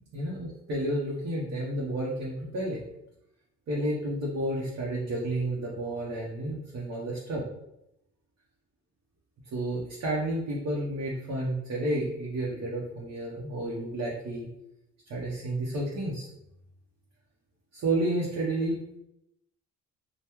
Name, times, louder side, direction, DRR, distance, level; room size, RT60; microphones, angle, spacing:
voice 1, 0.1-2.8 3.7-7.4 9.5-14.5 15.1-16.3 17.7-18.8, right 1 dB, 55° right, -4 dB, 0.8 m, -31 dB
2.9 x 2.2 x 3.4 m, 0.84 s
cardioid pair, 90°, 30 cm